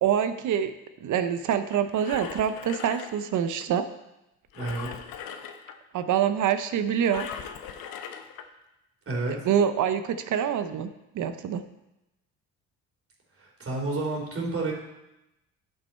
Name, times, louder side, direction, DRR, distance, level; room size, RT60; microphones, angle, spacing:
voice 1, 0.0-0.7 1.0-3.8 5.9-7.3 9.3-11.6, right 8 dB, 60° right, 10 dB, 0.7 m, -26 dB
Engine, 1.7-3.7 4.5-5.8 7.1-8.5 9.1-9.2, left 7 dB, 75° left, 0.9 m, -40 dB
voice 2, 4.5-4.9 9.1-9.4 13.6-14.7, right 2 dB, 40° right, -1 dB, 2.9 m, -29 dB
10.5 x 5.6 x 4.3 m, 0.92 s
cardioid pair, 85°, 34 cm